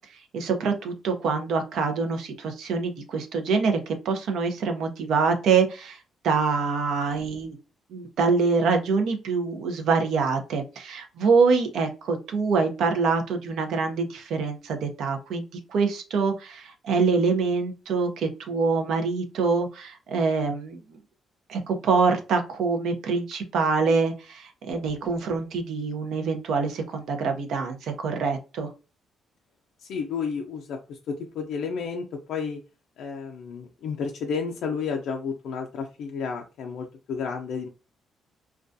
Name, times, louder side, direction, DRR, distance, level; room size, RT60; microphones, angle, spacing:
voice 1, 0.3-6.0 6.2-7.6 7.9-15.4 15.7-21.0 21.5-28.7, right 4 dB, 75° right, 6 dB, 0.5 m, -25 dB
voice 2, 29.8-32.6 33.0-37.7, left 5 dB, 80° left, 2 dB, 0.3 m, -31 dB
2.3 x 2.2 x 2.5 m, 0.31 s
cardioid pair, 90°, 0 cm